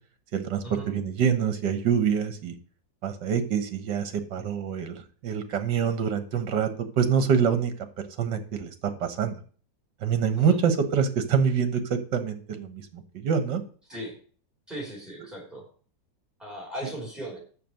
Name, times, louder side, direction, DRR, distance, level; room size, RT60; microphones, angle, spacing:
voice 1, 0.3-2.5 3.0-7.7 8.2-8.7 9.0-9.4 10.0-13.6, right 7 dB, 70° right, 9 dB, 1.8 m, -26 dB
voice 2, 14.7-15.6 16.4-17.4, right 1 dB, ahead, -3 dB, 4.6 m, -37 dB
6.8 x 6.3 x 7.7 m, 0.43 s
omnidirectional pair, 2.0 m